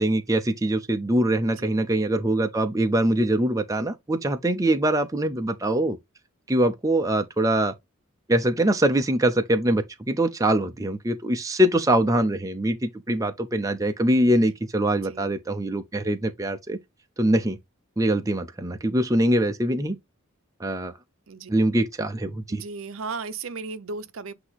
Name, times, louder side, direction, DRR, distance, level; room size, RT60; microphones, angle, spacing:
voice 1, 0.0-6.0 6.5-7.7 8.3-16.8 17.2-17.6 18.0-20.0 20.6-20.9 21.5-22.6, right 1 dB, 15° right, 0.6 m, -23 dB
voice 2, 1.4-1.8 14.8-15.4 21.3-21.5 22.5-24.3, right 4 dB, 70° right, 0.7 m, -36 dB
8.0 x 2.9 x 4.0 m
head